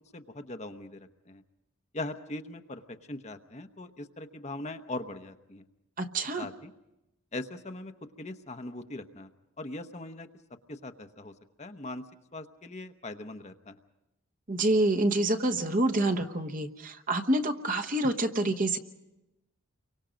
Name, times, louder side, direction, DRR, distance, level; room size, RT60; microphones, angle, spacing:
voice 1, 0.1-1.4 1.9-2.8 3.1-5.6 6.4-6.7 7.3-7.9 8.2-9.3 9.6-10.3 10.7-11.3 11.6-12.0 12.3-13.8, left 2 dB, 30° left, 7 dB, 0.9 m, -40 dB
voice 2, 6.0-6.5 14.5-18.8, right 1 dB, 40° right, 7 dB, 1.1 m, -27 dB
30.0 x 24.0 x 5.1 m, 0.93 s
head